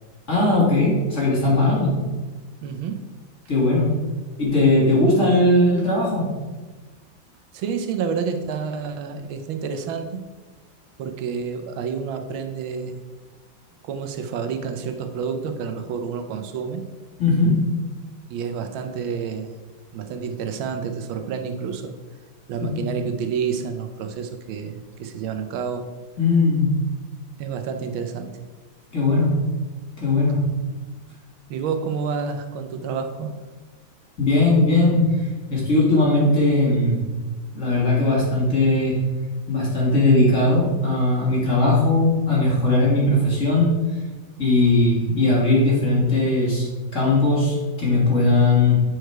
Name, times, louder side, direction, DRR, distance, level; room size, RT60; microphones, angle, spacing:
voice 1, 0.3-2.0 3.5-3.9 4.4-6.3 17.2-17.6 22.6-22.9 26.2-26.7 28.9-29.4 30.0-30.4 34.2-37.0 37.5-39.0 39.5-43.7 44.4-46.7 46.9-48.8, left 2 dB, 40° left, -5 dB, 2.3 m, -19 dB
voice 2, 2.6-3.1 7.5-10.2 11.0-13.0 13.8-16.8 18.3-19.5 19.9-21.9 22.5-25.9 27.4-28.4 31.5-33.4, right 6 dB, 85° right, 7 dB, 1.5 m, -29 dB
7.7 x 4.8 x 4.6 m, 1.3 s
omnidirectional pair, 2.2 m